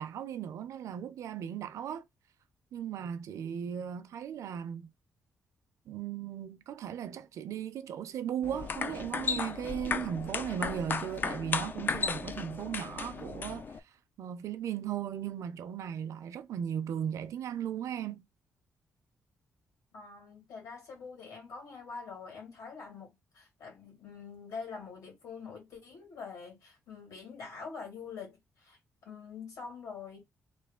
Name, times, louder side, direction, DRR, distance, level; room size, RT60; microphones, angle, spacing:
voice 1, 0.0-2.0 2.7-4.9 5.9-13.7 14.2-18.2, right 9 dB, 75° right, 0.5 m, -37 dB
sound 1, 8.4-13.8, left 5 dB, 40° left, 0.4 m, -35 dB
voice 2, 19.9-30.2, left 5 dB, 85° left, 2.2 m, -45 dB
3.4 x 2.3 x 3.6 m
cardioid pair, 130°, 5 cm